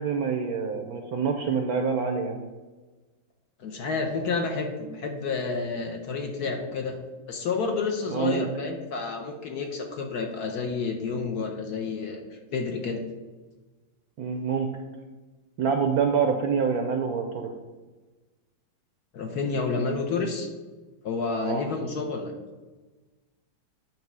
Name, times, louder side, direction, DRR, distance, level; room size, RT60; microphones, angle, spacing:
voice 1, 0.0-2.4 8.1-8.5 14.2-14.7 15.6-17.5 21.4-21.6, right 6 dB, 70° right, 4 dB, 0.9 m, -26 dB
voice 2, 3.6-7.0 7.3-12.2 12.5-13.0 19.1-20.5 21.0-22.3, left 4 dB, 65° left, 3 dB, 1.1 m, -30 dB
8.8 x 3.0 x 6.0 m, 1.2 s
omnidirectional pair, 2.1 m